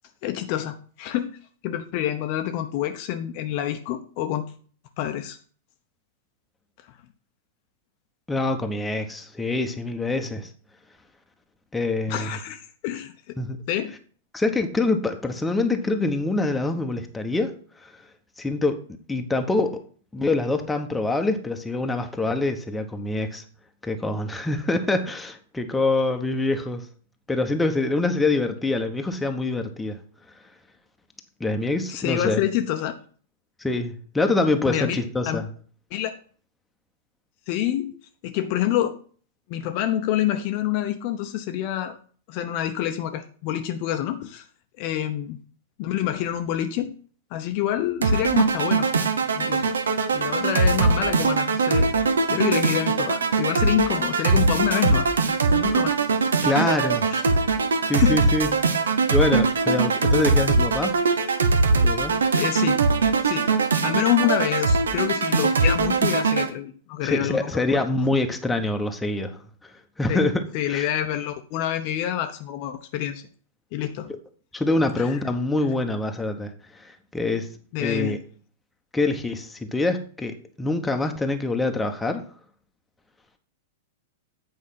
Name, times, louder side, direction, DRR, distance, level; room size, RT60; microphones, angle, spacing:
voice 1, 0.2-1.4 1.6-4.5 5.0-5.4 12.1-13.1 13.7-13.9 31.9-32.9 34.7-35.4 35.9-36.1 37.5-37.9 38.2-39.0 39.5-42.0 42.3-44.4 44.8-45.4 45.8-46.9 47.3-48.9 49.4-49.7 50.1-51.9 52.3-55.1 55.5-56.0 56.5-56.7 57.1-57.2 58.0-58.2 62.3-62.8 63.2-63.5 63.8-67.8 70.1-70.2 70.5-73.2 73.7-74.1 75.0-75.2 77.7-78.2, left 11 dB, 45° left, 7 dB, 0.7 m, -27 dB
voice 2, 8.3-10.5 11.7-12.4 13.4-13.6 14.3-17.5 17.8-17.9 18.4-18.8 19.1-19.8 20.1-23.4 23.8-26.9 27.3-30.0 31.4-32.4 33.6-35.5 56.4-57.1 57.9-58.5 59.1-61.0 61.8-62.2 67.0-69.4 70.0-70.4 70.7-70.9 74.1-74.2 74.5-77.5 77.8-78.2 78.9-82.2, left 2 dB, 10° left, 5 dB, 1.0 m, -25 dB
sound 1, 48.0-66.5, right 4 dB, 75° right, 0.9 m, -21 dB
8.4 x 4.8 x 5.7 m, 0.43 s
figure-of-eight pair, 100°, 0 cm